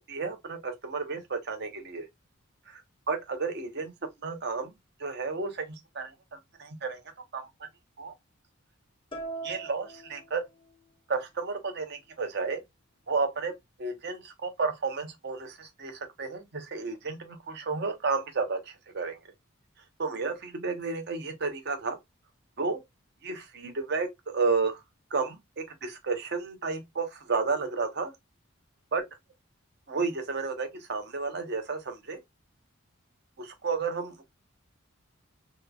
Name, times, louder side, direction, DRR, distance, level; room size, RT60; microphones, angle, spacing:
voice 1, 0.0-2.1 3.1-3.9 4.2-4.7 5.0-7.0 7.3-7.7 8.0-8.1 9.4-10.4 11.1-12.6 13.1-13.5 13.8-19.2 20.0-22.0 22.6-22.8 23.2-24.8 25.1-28.1 28.9-29.0 29.9-32.2 33.4-34.2, right 4 dB, 50° right, 0.7 m, -32 dB
sound 1, 9.1-10.9, right 3 dB, 25° left, 0.6 m, -41 dB
2.9 x 2.3 x 2.3 m
head